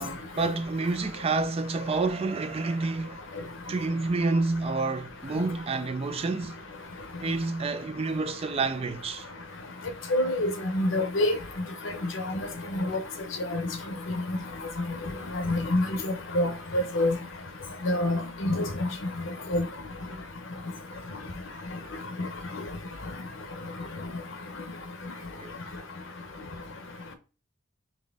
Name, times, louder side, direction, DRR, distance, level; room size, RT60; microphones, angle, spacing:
voice 1, 0.0-3.3 3.7-6.6 7.2-9.3 25.4-25.5, right 3 dB, 30° right, 0.3 m, -29 dB
voice 2, 10.1-11.3 12.9-13.0 13.5-13.6 15.3-15.8 16.3-17.1 17.8-18.6 19.5-19.6, left 1 dB, 70° left, 0.8 m, -25 dB
4.1 x 3.1 x 3.5 m
head